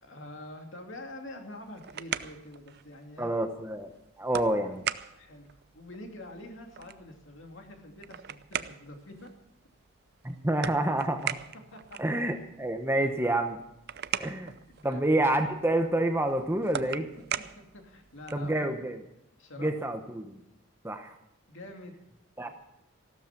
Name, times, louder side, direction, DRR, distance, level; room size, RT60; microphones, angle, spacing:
voice 1, 0.0-3.3 5.1-9.3 11.7-12.0 13.0-13.2 14.7-15.2 17.2-18.7 19.4-19.7 21.5-22.0 22.4-22.5, left 1 dB, 65° left, 3 dB, 2.7 m, -46 dB
sound 1, 1.5-18.5, right 9 dB, 50° right, 0.5 m, -41 dB
voice 2, 3.2-3.9 4.2-4.8 10.2-11.3 12.0-13.6 14.2-14.5 14.8-17.0 18.3-19.0 19.6-20.4 20.8-21.1 22.4-22.5, right 1 dB, 10° right, 6 dB, 0.9 m, -28 dB
15.0 x 13.0 x 5.9 m, 0.82 s
head